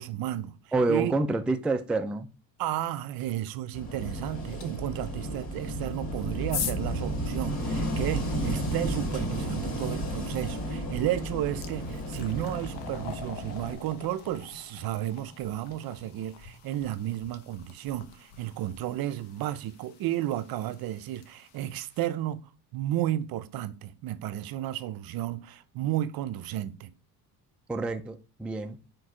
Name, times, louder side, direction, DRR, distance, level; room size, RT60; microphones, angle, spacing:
voice 1, 0.0-0.6 0.9-1.1 2.6-22.4 22.7-26.9, right 13 dB, 60° right, 0.6 m, -33 dB
voice 2, 0.7-2.3 27.7-28.8, right 3 dB, 5° right, 0.3 m, -28 dB
Wind / Waves surf, 3.7-13.7, right 1 dB, 40° left, 3.2 m, -33 dB
sound 1, 4.6-4.7 5.8-8.2 10.5-10.6 11.1-22.1, left 7 dB, 70° left, 1.1 m, -43 dB
4.6 x 4.5 x 4.9 m
cardioid pair, 110°, 41 cm